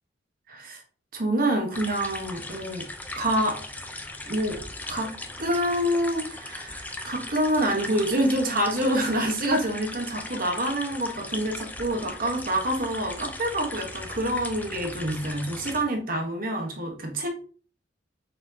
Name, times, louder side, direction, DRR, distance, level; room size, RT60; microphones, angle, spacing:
voice 1, 0.5-0.8 1.1-2.8 3.2-3.6 4.2-4.6 4.9-5.1 5.4-17.3, right 1 dB, 50° right, 3 dB, 1.0 m, -27 dB
sound 1, 1.7-15.8, left 2 dB, 10° left, 0.4 m, -38 dB
4.4 x 4.3 x 2.7 m, 0.41 s
head